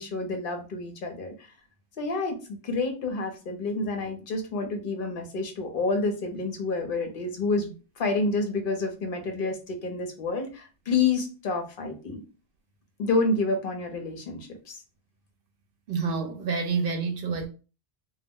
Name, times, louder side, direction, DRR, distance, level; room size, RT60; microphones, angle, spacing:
voice 1, 0.0-1.3 2.0-12.2 13.0-14.8, left 3 dB, 60° left, 0.9 m, -29 dB
voice 2, 15.9-17.5, right 5 dB, 65° right, 0.8 m, -28 dB
2.3 x 2.0 x 3.5 m
omnidirectional pair, 1.0 m